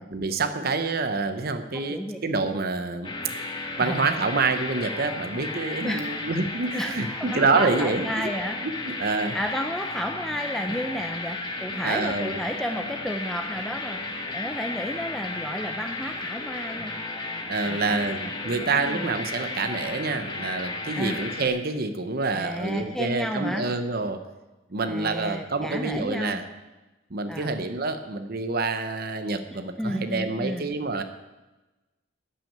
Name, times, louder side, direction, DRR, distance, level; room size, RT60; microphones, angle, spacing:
voice 1, 0.1-3.1 3.8-8.3 8.6-9.4 11.8-12.4 17.5-24.2 24.7-26.4 27.1-31.0, right 3 dB, 50° right, 8 dB, 0.8 m, -27 dB
voice 2, 1.7-2.2 3.8-4.0 5.8-6.2 6.7-8.6 9.3-16.9 17.6-19.1 20.9-21.2 22.3-23.7 24.8-26.4 27.3-27.5 29.5-30.7, equal, ahead, 4 dB, 0.6 m, -32 dB
sound 1, 3.0-21.5, left 2 dB, 25° left, 1.4 m, -34 dB
13.0 x 6.2 x 8.7 m, 1.1 s
head